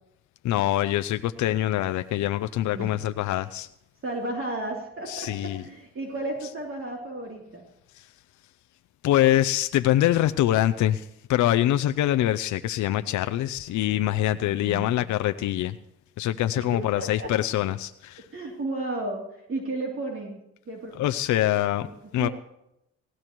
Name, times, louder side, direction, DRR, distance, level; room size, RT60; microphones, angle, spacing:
voice 1, 0.4-3.7 5.1-5.6 7.9-8.1 9.0-15.8 16.2-18.2 21.0-21.9 22.1-22.3, left 13 dB, 70° left, 10 dB, 0.5 m, -24 dB
voice 2, 4.0-7.6 14.5-14.9 16.6-17.3 18.3-20.9 21.8-21.9 22.2-22.3, right 2 dB, 45° right, -1 dB, 3.0 m, -33 dB
19.0 x 16.5 x 3.1 m, 0.83 s
cardioid pair, 90°, 30 cm